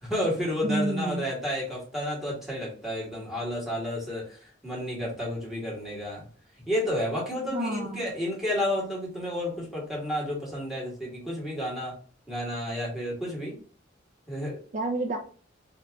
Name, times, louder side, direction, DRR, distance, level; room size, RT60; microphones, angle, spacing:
voice 1, 0.0-6.3 6.7-12.0 12.3-13.6 14.3-14.6, left 1 dB, ahead, -5 dB, 1.7 m, -31 dB
voice 2, 0.6-1.3 7.5-8.1 14.7-15.2, right 2 dB, 40° right, 1 dB, 0.5 m, -29 dB
3.6 x 3.0 x 3.4 m, 0.40 s
head